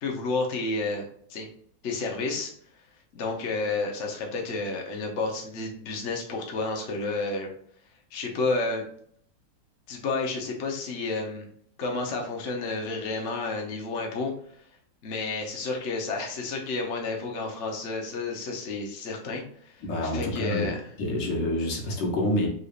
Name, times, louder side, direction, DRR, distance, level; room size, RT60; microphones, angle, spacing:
voice 1, 0.0-1.0 1.3-1.5 1.8-2.5 3.1-7.5 8.1-8.8 9.9-11.5 11.8-14.3 15.0-19.7 20.0-20.8, left 3 dB, 50° left, 0 dB, 1.0 m, -30 dB
voice 2, 19.8-22.5, left 1 dB, 70° left, 0 dB, 1.7 m, -28 dB
4.8 x 4.0 x 2.4 m, 0.62 s
omnidirectional pair, 2.0 m